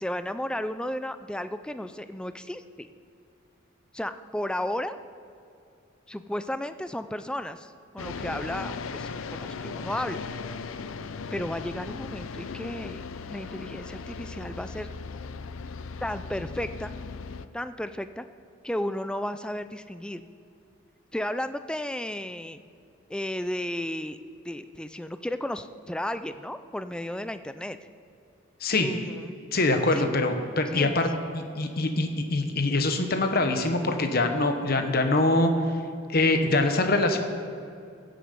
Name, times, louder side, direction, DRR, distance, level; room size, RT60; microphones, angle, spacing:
voice 1, 0.0-2.9 3.9-5.0 6.1-10.2 11.3-14.9 16.0-17.0 17.5-18.3 18.6-20.2 21.1-22.6 23.1-24.2 24.4-27.8 28.7-29.4 29.9-30.1 30.7-31.0, left 1 dB, 5° left, 11 dB, 0.3 m, -33 dB
sound 1, 8.0-17.5, left 4 dB, 70° left, 0.5 m, -37 dB
voice 2, 29.5-31.1 31.3-35.5 36.1-37.2, left 2 dB, 45° left, 6 dB, 1.0 m, -24 dB
16.0 x 7.7 x 5.3 m, 2.5 s
head